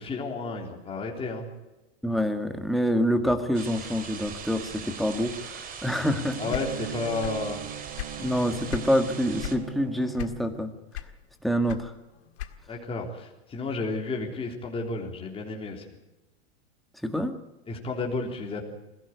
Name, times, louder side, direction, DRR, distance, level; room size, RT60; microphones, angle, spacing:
voice 1, 0.0-1.5 6.4-7.6 12.7-15.9 17.7-18.6, left 3 dB, 15° left, 0 dB, 3.6 m, -32 dB
voice 2, 2.0-5.5 5.8-6.4 8.2-10.7 11.4-11.9 17.0-17.3, equal, ahead, 6 dB, 1.9 m, -26 dB
sound 1, 3.5-9.6, right 6 dB, 25° right, 2.6 m, -41 dB
Bowed string instrument, 6.0-10.7, right 11 dB, 60° right, 1.5 m, -39 dB
sound 2, 6.5-7.5 7.8-9.0 9.4-9.7 10.2-10.6 10.9-12.8, left 14 dB, 80° left, 1.9 m, -36 dB
22.0 x 16.5 x 8.2 m, 1.0 s
supercardioid pair, 135°, 32 cm